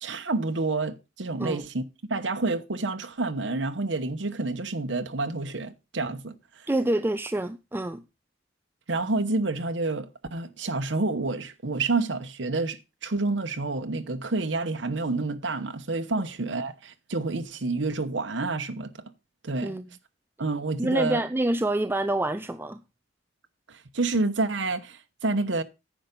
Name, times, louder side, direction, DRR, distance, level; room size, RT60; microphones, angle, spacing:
voice 1, 0.0-1.8 2.1-6.7 8.9-18.9 19.4-19.8 20.4-21.2 23.7-25.6, right 3 dB, 80° right, 1.0 m, -29 dB
voice 2, 6.7-8.0 19.6-19.8 20.8-22.8, right 1 dB, 10° right, 0.5 m, -27 dB
10.0 x 7.0 x 5.2 m
head